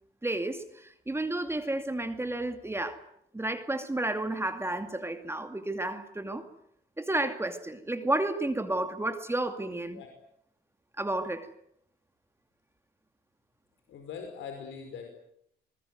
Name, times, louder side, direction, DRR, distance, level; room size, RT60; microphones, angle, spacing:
voice 1, 0.2-3.0 3.3-6.4 7.0-10.0 11.0-11.5, right 2 dB, 10° right, 8 dB, 2.5 m, -31 dB
voice 2, 13.9-15.1, left 6 dB, 75° left, 4 dB, 5.1 m, -41 dB
26.5 x 20.5 x 9.5 m, 0.74 s
cardioid pair, 90°, 20 cm